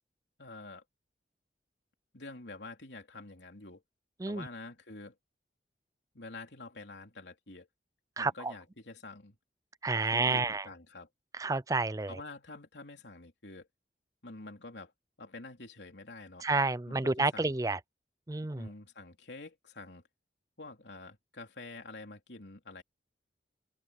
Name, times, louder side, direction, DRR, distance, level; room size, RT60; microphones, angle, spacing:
voice 1, 0.4-0.8 2.1-3.8 4.2-5.2 6.1-7.7 8.2-9.4 10.1-11.1 12.1-13.7 14.2-14.9 15.2-16.4 16.9-17.6 18.5-20.0 20.6-22.8, left 3 dB, 85° left, 3.4 m, -47 dB
voice 2, 8.2-8.5 9.8-10.7 11.4-12.2 16.4-17.8 18.3-18.7, right 3 dB, 20° right, 0.4 m, -30 dB
open air
head